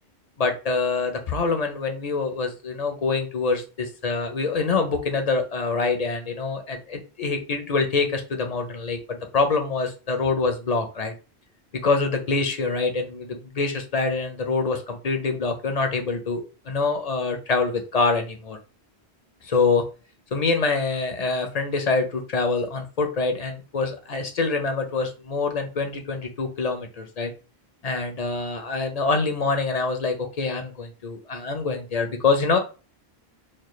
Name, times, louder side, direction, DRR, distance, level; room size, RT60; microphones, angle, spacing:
voice 1, 0.4-11.1 11.8-18.6 19.4-19.8 20.3-27.3 27.8-32.6, left 4 dB, 50° left, 6 dB, 0.5 m, -25 dB
4.2 x 2.2 x 3.1 m, 0.34 s
omnidirectional pair, 1.1 m